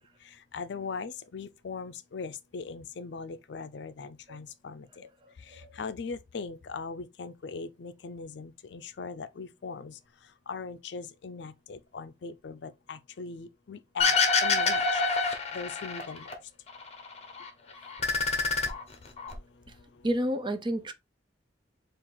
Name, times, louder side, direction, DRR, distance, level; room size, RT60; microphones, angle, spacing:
voice 1, 0.5-4.8 5.8-9.9 10.5-14.1 14.4-15.0 15.5-16.2, left 4 dB, 65° left, 0.4 m, -39 dB
sound 1, 14.0-16.3 16.7-17.5 17.8-19.3, left 4 dB, 35° left, 0.8 m, -27 dB
voice 2, 20.0-20.9, equal, 25° right, 0.5 m, -30 dB
4.6 x 2.5 x 3.6 m
head